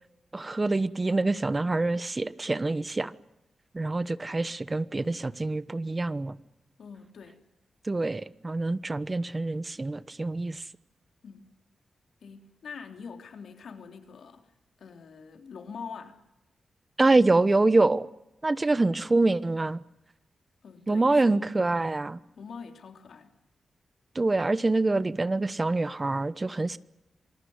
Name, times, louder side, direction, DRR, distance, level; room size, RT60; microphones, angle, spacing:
voice 1, 0.3-3.1 3.7-6.3 7.9-10.6 17.0-18.1 18.4-19.8 20.9-22.2 24.1-26.8, right 2 dB, 30° right, 1.1 m, -25 dB
voice 2, 6.8-7.4 11.2-11.5 12.2-14.5 14.8-16.2 20.6-21.4 22.3-23.3, left 5 dB, 80° left, 3.4 m, -44 dB
27.0 x 19.0 x 9.6 m
cardioid pair, 55°, 0 cm